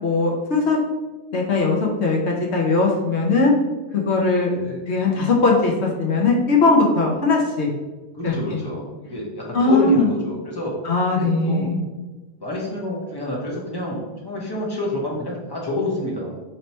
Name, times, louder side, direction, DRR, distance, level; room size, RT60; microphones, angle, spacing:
voice 1, 0.0-0.8 1.3-3.5 3.9-4.5 4.9-7.7 8.2-8.6 9.5-10.1 10.8-11.8, left 3 dB, 60° left, -1 dB, 0.7 m, -19 dB
voice 2, 4.5-4.8 8.1-10.7 11.1-11.7 12.4-16.3, left 1 dB, 20° left, -4 dB, 0.7 m, -28 dB
3.2 x 2.9 x 4.1 m, 1.2 s
omnidirectional pair, 1.7 m